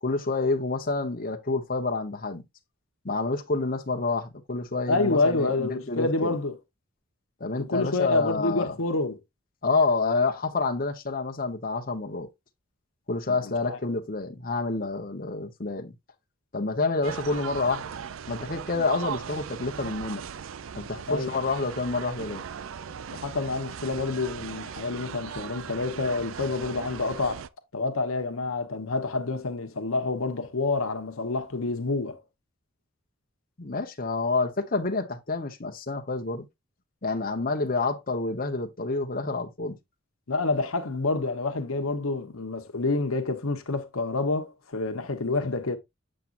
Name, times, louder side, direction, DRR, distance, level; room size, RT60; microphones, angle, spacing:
voice 1, 0.0-2.4 3.0-6.4 7.4-8.7 9.6-12.3 13.1-15.9 16.5-17.9 18.3-20.2 20.7-22.4 33.6-36.5 37.0-39.8, left 3 dB, 45° left, 1.1 m, -28 dB
voice 2, 4.9-6.6 7.6-9.2 13.3-13.8 21.1-21.3 23.1-27.4 27.7-32.2 40.3-45.8, left 3 dB, 85° left, 1.1 m, -28 dB
sound 1, 17.0-27.5, right 7 dB, 70° right, 0.4 m, -38 dB
7.7 x 7.3 x 2.6 m
head